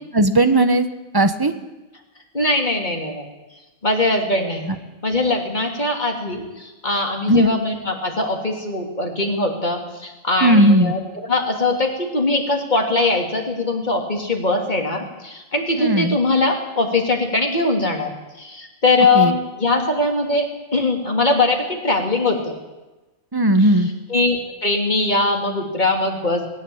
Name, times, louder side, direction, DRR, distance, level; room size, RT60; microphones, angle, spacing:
voice 1, 0.1-0.9 1.1-1.5 7.3-7.5 10.4-10.9 15.8-16.2 19.1-19.4 23.3-23.9, right 1 dB, 15° right, 10 dB, 1.3 m, -16 dB
voice 2, 2.3-3.3 3.8-4.7 5.0-18.1 18.4-20.5 20.7-22.5 24.1-26.5, left 2 dB, 35° left, 2 dB, 3.3 m, -21 dB
20.5 x 16.0 x 8.9 m, 1.1 s
omnidirectional pair, 1.4 m